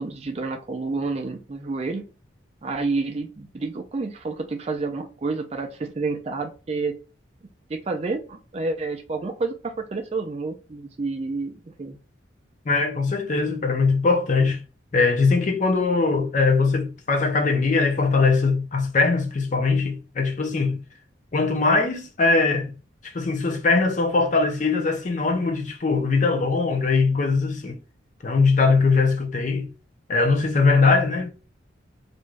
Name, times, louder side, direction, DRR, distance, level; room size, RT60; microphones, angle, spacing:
voice 1, 0.0-2.1 2.6-6.9 7.7-12.0, right 3 dB, 30° right, 0.4 m, -29 dB
voice 2, 12.7-14.6 14.9-20.8 21.3-22.7 23.0-27.8 28.2-29.7 30.1-31.3, left 4 dB, 40° left, 0.5 m, -21 dB
2.5 x 2.2 x 3.1 m
head